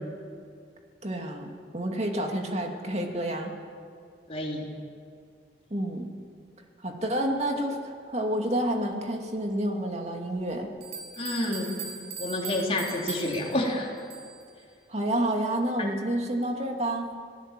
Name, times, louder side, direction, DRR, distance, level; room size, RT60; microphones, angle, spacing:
voice 1, 1.0-3.5 5.7-6.1 6.8-7.8 8.1-10.7 14.9-17.1, right 1 dB, 40° right, 2 dB, 2.5 m, -29 dB
voice 2, 4.3-4.7 11.2-11.7 12.2-13.9 15.8-15.9, left 1 dB, 35° left, -1 dB, 3.7 m, -29 dB
sound 1, 10.4-10.5 10.8-14.5, right 5 dB, 65° right, 5.6 m, -40 dB
25.5 x 18.0 x 7.6 m, 2.3 s
head